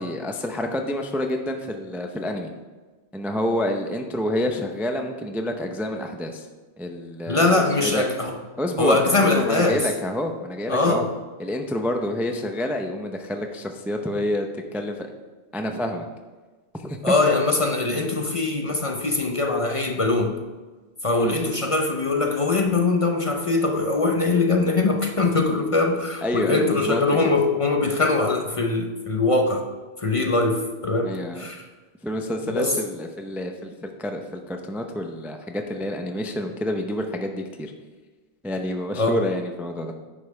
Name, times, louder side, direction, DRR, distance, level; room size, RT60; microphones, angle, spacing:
voice 1, 0.0-2.5 3.1-6.5 6.8-8.0 8.6-11.0 11.4-14.5 14.7-15.1 15.5-16.1 16.8-17.1 21.1-21.4 26.2-27.0 31.0-31.4 32.0-37.7 38.4-39.9, left 1 dB, ahead, 4 dB, 0.4 m, -28 dB
voice 2, 7.3-8.4 8.8-9.9 10.7-11.1 17.0-20.4 21.0-29.6 30.0-31.7 32.5-32.8 39.0-39.2, left 3 dB, 35° left, 3 dB, 0.6 m, -22 dB
10.0 x 5.4 x 4.8 m, 1.3 s
omnidirectional pair, 1.1 m